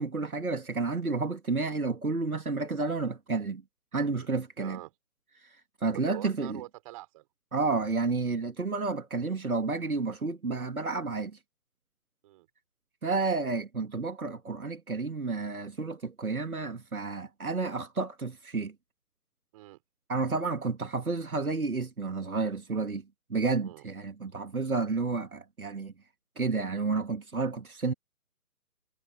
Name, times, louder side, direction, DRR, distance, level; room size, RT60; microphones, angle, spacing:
voice 1, 0.0-3.6 3.9-4.8 5.4-5.5 5.8-6.6 7.5-11.3 13.0-18.7 20.1-23.0 23.3-25.9 26.4-27.9, right 4 dB, 65° right, 2.5 m, -31 dB
voice 2, 4.6-4.9 5.9-7.2 12.2-12.5 19.5-19.8 23.6-23.8, right 17 dB, 20° right, 6.6 m, -45 dB
figure-of-eight pair, 145°, 46 cm